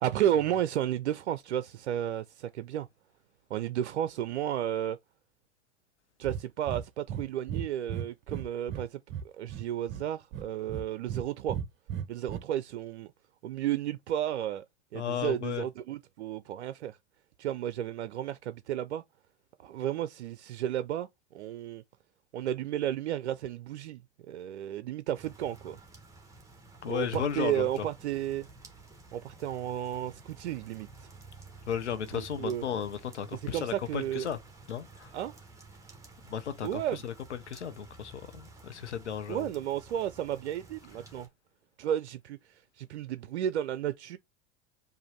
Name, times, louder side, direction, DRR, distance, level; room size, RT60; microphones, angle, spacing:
voice 1, 0.0-2.9 3.5-5.0 6.2-9.0 9.2-11.6 12.1-13.1 13.4-14.6 14.9-17.0 17.4-19.0 19.6-21.8 22.3-24.0 24.3-25.8 26.9-28.5 29.1-31.1 32.1-32.6 33.3-34.3 35.1-35.4 36.6-37.0 39.3-41.3 41.8-44.2, right 11 dB, 75° right, 0.5 m, -33 dB
Breathing, 6.2-6.4 6.7-6.8 7.1-7.2 7.5-8.8 9.1-10.0 10.3-11.2 11.5-12.4, right 9 dB, 35° right, 0.9 m, -35 dB
voice 2, 14.9-15.6 26.8-27.7 31.7-34.4 34.7-35.1 36.3-37.1 37.5-39.5, left 8 dB, 90° left, 0.7 m, -34 dB
sound 1, 25.1-41.3, right 3 dB, 10° right, 1.4 m, -52 dB
4.9 x 2.6 x 3.2 m
hypercardioid pair, 90°, 33 cm